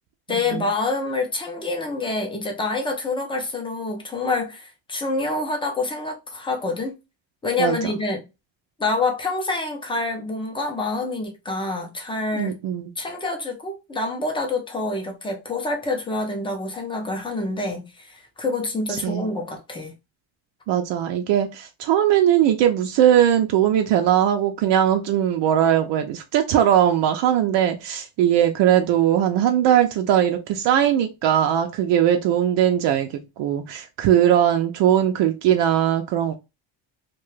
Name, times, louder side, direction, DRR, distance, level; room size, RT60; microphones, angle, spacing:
voice 1, 0.3-7.0 7.4-8.2 8.8-12.5 13.0-19.9, left 3 dB, 10° left, 0.4 m, -27 dB
voice 2, 7.6-7.9 12.3-12.9 19.0-19.3 20.7-36.3, right 10 dB, 70° right, 0.5 m, -20 dB
2.8 x 2.2 x 3.1 m
cardioid pair, 170°, 44 cm